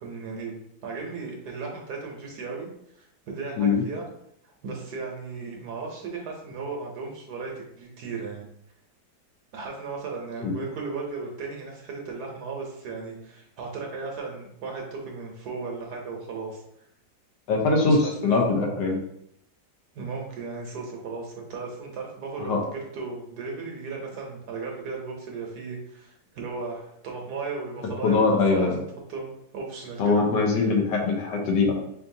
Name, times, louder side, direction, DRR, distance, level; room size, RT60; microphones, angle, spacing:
voice 1, 0.0-2.7 2.9-4.0 4.4-8.5 9.5-16.6 17.8-18.6 19.9-28.2 28.5-28.7 29.1-30.2 30.6-30.7, right 4 dB, 65° right, 0 dB, 1.2 m, -36 dB
voice 2, 17.5-19.0 22.4-22.6 28.0-28.8 30.0-31.7, left 4 dB, 75° left, 1 dB, 1.4 m, -22 dB
5.2 x 2.6 x 2.6 m, 0.73 s
omnidirectional pair, 2.0 m